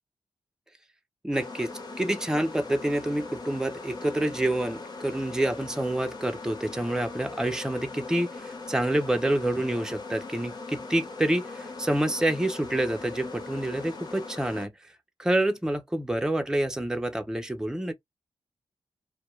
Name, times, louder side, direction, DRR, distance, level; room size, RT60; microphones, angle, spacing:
voice 1, 1.2-1.7 2.0-14.9 15.2-17.9, right 1 dB, 5° right, 0.5 m, -27 dB
sound 1, 1.3-14.7, left 3 dB, 40° left, 0.8 m, -40 dB
2.2 x 2.1 x 3.0 m
cardioid pair, 80°, 11 cm